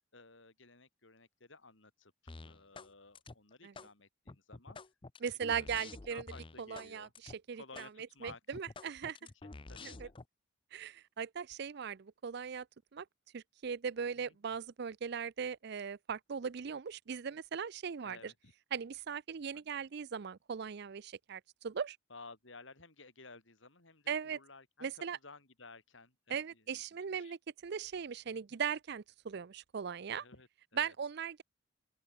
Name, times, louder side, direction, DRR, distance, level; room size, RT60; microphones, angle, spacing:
voice 1, 0.1-4.8 5.2-5.7 6.1-7.1 7.5-10.1 14.0-14.3 18.0-18.5 22.1-24.9 25.2-26.8 27.1-27.4 30.2-30.9, left 3 dB, 70° left, 4.2 m, -56 dB
sound 1, 2.3-2.9 3.2-3.9 4.3-6.9 7.2-7.4 7.8-7.9 8.3-10.3, left 3 dB, 25° left, 0.6 m, -49 dB
voice 2, 5.2-6.3 6.6-9.2 9.8-10.1 10.7-12.7 12.9-13.1 13.3-18.3 18.7-22.0 24.1-24.4 24.8-25.2 26.3-30.2 30.7-31.4, right 7 dB, 55° right, 0.5 m, -39 dB
open air
head